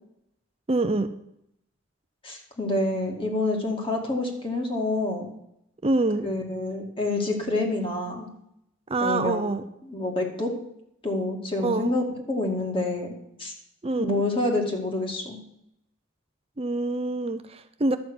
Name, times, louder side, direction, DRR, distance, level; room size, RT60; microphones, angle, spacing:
voice 1, 0.7-1.1 5.8-6.3 8.9-9.6 11.6-12.0 13.8-14.2 16.6-18.0, right 2 dB, 30° right, 9 dB, 0.6 m, -25 dB
voice 2, 2.2-5.3 6.2-8.3 9.0-9.5 9.8-10.5 11.0-13.1 13.4-13.5 14.0-15.4, left 2 dB, 25° left, 1 dB, 2.2 m, -27 dB
11.5 x 8.2 x 6.2 m, 0.78 s
head